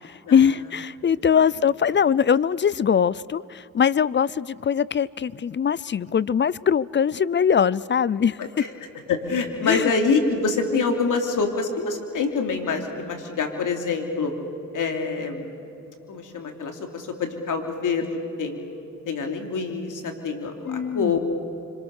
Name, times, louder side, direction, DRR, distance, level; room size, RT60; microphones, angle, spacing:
voice 1, 0.0-8.4 9.6-9.9 20.7-21.2, left 7 dB, 35° left, 22 dB, 0.5 m, -22 dB
voice 2, 9.1-14.3 14.7-15.5 16.1-18.6 19.1-21.2, left 4 dB, 65° left, 4 dB, 3.2 m, -26 dB
26.0 x 26.0 x 6.6 m, 2.8 s
cardioid pair, 70°, 33 cm